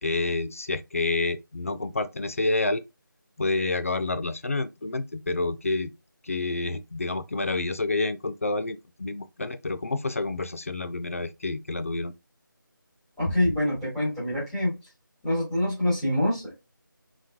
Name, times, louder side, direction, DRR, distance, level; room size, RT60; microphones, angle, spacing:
voice 1, 0.0-2.8 3.4-5.9 6.2-12.1, left 3 dB, 40° left, 0.4 m, -28 dB
voice 2, 13.2-14.8 15.2-16.6, left 1 dB, ahead, 1.6 m, -25 dB
3.9 x 3.0 x 2.3 m
figure-of-eight pair, 165°, 11 cm